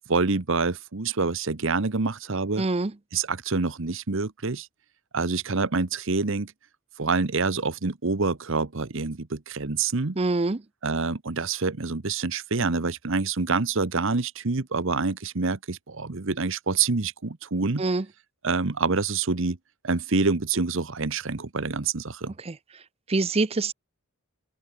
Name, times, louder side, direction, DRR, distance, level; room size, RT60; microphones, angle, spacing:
voice 1, 0.1-2.6 3.1-4.7 5.1-6.5 7.0-10.2 10.8-17.8 18.4-19.6 19.8-22.3, right 4 dB, 60° right, 1.0 m, -26 dB
voice 2, 2.6-2.9 10.2-10.6 17.8-18.0 22.5-22.6 23.1-23.7, right 3 dB, 25° right, 0.6 m, -24 dB
open air
head